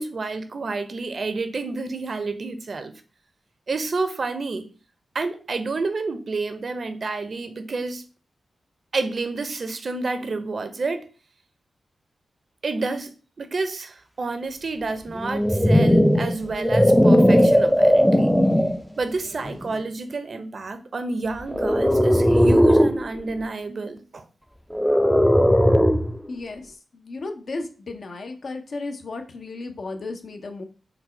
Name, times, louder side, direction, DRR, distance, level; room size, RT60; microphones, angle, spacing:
voice 1, 0.0-2.9 3.7-4.7 5.1-8.0 8.9-11.1 12.6-18.3 19.0-24.3, right 3 dB, 55° right, 0.5 m, -29 dB
sound 1, 15.2-18.8 19.5-19.7 21.5-23.0 24.7-26.2, equal, 5° left, 0.3 m, -17 dB
voice 2, 26.3-30.6, left 3 dB, 65° left, 0.6 m, -34 dB
4.0 x 2.2 x 4.4 m
cardioid pair, 75°, 0 cm